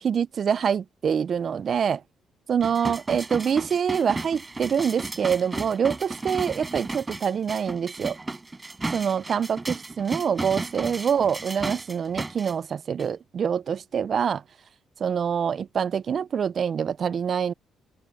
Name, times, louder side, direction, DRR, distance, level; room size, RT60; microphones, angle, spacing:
voice 1, 0.0-2.0 2.5-8.2 8.9-14.4 15.0-17.5, right 7 dB, 50° right, 0.4 m, -25 dB
sound 1, 2.6-12.5 13.0-13.1, right 2 dB, 20° right, 6.6 m, -34 dB
cardioid pair, 90°, 0 cm